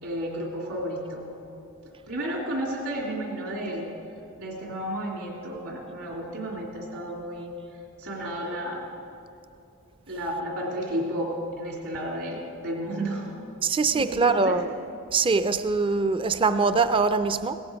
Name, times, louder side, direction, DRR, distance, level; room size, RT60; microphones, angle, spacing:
voice 1, 0.0-1.3 2.1-3.9 4.4-7.5 8.0-8.9 10.1-13.3 13.9-14.6, right 1 dB, 65° right, -1 dB, 3.0 m, -32 dB
voice 2, 13.6-14.7 15.1-17.6, right 4 dB, 25° right, 11 dB, 0.4 m, -23 dB
17.0 x 14.0 x 5.2 m, 2.7 s
head